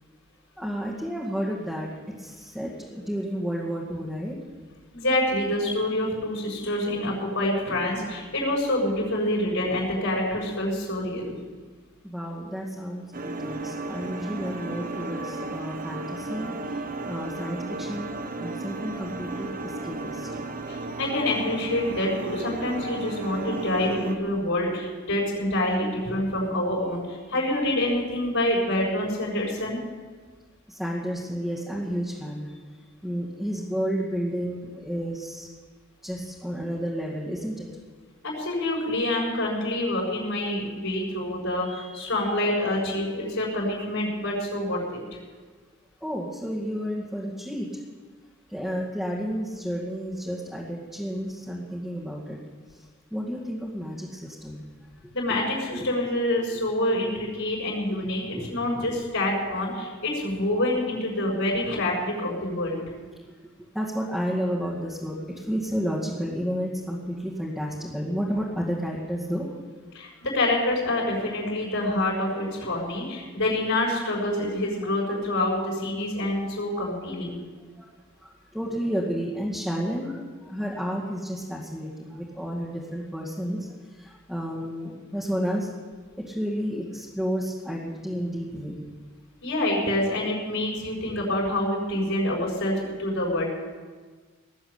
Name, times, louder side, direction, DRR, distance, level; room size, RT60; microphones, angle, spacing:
voice 1, 0.6-1.9 2.2-4.4 12.0-20.4 30.7-32.5 33.0-35.5 36.0-37.7 41.6-42.3 46.0-47.7 48.5-52.4 53.1-54.6 55.7-55.9 58.0-58.5 58.7-58.9 63.7-69.5 77.8-77.9 78.2-83.7 83.9-85.7 86.1-88.8, equal, ahead, -6 dB, 2.1 m, -31 dB
voice 2, 4.9-11.4 20.7-29.8 38.2-44.8 45.1-45.2 55.1-62.8 69.9-77.4 89.4-93.4, left 1 dB, 75° left, -4 dB, 6.5 m, -27 dB
sound 1, 13.1-24.2, right 2 dB, 45° right, 1.2 m, -34 dB
19.5 x 7.7 x 8.9 m, 1.4 s
head